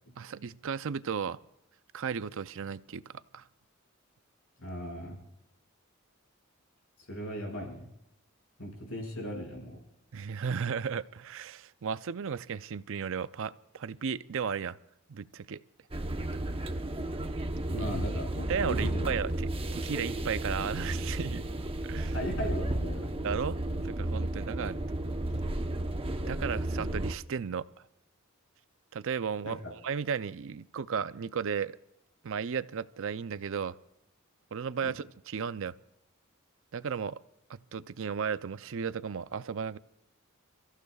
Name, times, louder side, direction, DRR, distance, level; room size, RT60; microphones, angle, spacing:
voice 1, 0.2-1.4 1.9-3.4 10.1-14.8 15.1-15.6 17.8-17.9 18.5-21.5 21.9-22.1 23.2-24.8 26.2-27.7 28.9-31.8 32.2-33.8 34.5-35.7 36.7-37.2 37.5-39.8, right 6 dB, 65° right, 15 dB, 0.5 m, -34 dB
voice 2, 4.6-5.2 7.0-7.9 8.6-9.8 17.6-19.1 22.1-23.1 29.4-29.5 34.8-34.9, equal, 70° left, 1 dB, 5.7 m, -37 dB
sound 1, 15.9-27.2, right 1 dB, 25° right, 0.9 m, -33 dB
29.5 x 15.0 x 2.4 m, 0.83 s
head